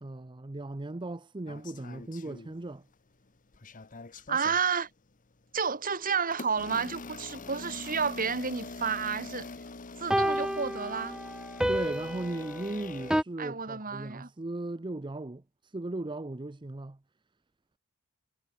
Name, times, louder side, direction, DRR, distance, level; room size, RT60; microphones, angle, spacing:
voice 1, 0.0-2.8 11.7-15.4 15.7-17.0, right 2 dB, 20° right, 0.6 m, -37 dB
sound 1, 1.5-2.9 3.3-4.6 5.3-5.5 6.3-13.2, left 3 dB, 40° left, 1.1 m, -44 dB
voice 2, 4.3-4.9 5.5-9.5 10.0-11.2 13.4-14.3, right 6 dB, 40° right, 2.7 m, -31 dB
sound 2, 5.9-6.0 10.1-13.2, equal, 5° right, 1.1 m, -30 dB
head